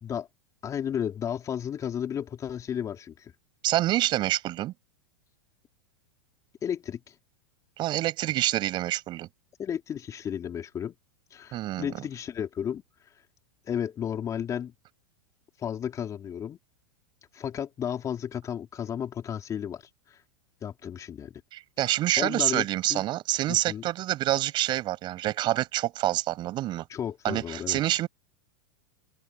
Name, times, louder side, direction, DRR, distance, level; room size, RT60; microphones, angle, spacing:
voice 1, 0.6-3.3 6.6-7.1 9.6-10.9 11.3-12.8 13.7-14.7 15.6-16.6 17.3-19.8 20.1-20.2 20.6-21.3 21.8-23.0 23.5-23.8 26.9-27.8, left 9 dB, 25° left, 3.3 m, -33 dB
voice 2, 3.6-4.7 7.8-9.3 11.5-12.1 21.5-26.8 27.2-28.1, right 15 dB, 40° right, 7.7 m, -27 dB
open air
hypercardioid pair, 125°, 12 cm